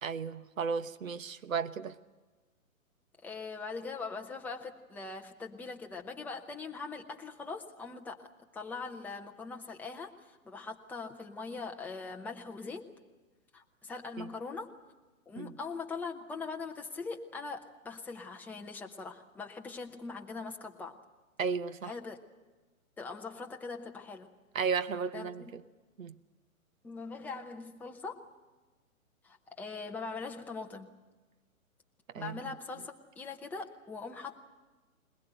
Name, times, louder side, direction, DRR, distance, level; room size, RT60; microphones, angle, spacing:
voice 1, 0.0-2.0 14.2-14.3 15.4-15.5 21.4-21.9 24.5-25.6 26.0-26.1 32.1-32.4, right 6 dB, 70° right, 12 dB, 1.1 m, -34 dB
voice 2, 3.2-8.3 8.5-12.9 13.5-14.7 15.3-20.9 21.8-22.2 23.0-24.3 25.1-25.5 26.8-28.3 29.2-31.0 32.2-34.4, left 4 dB, 5° left, 2 dB, 0.7 m, -41 dB
21.0 x 21.0 x 8.1 m, 1.2 s
figure-of-eight pair, 125°, 42 cm